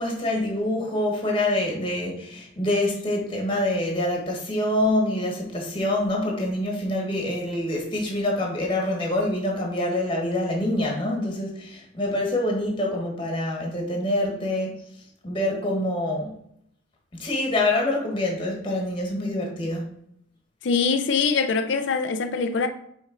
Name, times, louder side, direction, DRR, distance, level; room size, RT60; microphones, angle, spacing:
voice 1, 0.0-14.7 15.2-16.3 17.1-19.9, left 1 dB, 25° left, 1.3 m, -26 dB
voice 2, 20.6-22.7, left 5 dB, 65° left, 0.5 m, -23 dB
6.0 x 4.3 x 3.8 m
head